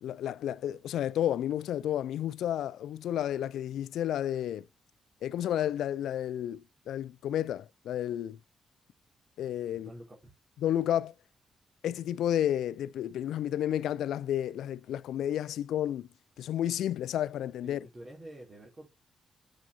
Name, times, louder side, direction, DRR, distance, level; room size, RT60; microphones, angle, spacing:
voice 1, 0.0-4.7 5.2-8.4 9.4-9.9 10.6-11.1 11.8-16.1 16.4-17.9, left 11 dB, 85° left, 0.3 m, -31 dB
voice 2, 9.7-10.3 17.6-18.9, right 1 dB, 35° right, 3.0 m, -48 dB
7.5 x 5.7 x 2.7 m
cardioid pair, 80°, 0 cm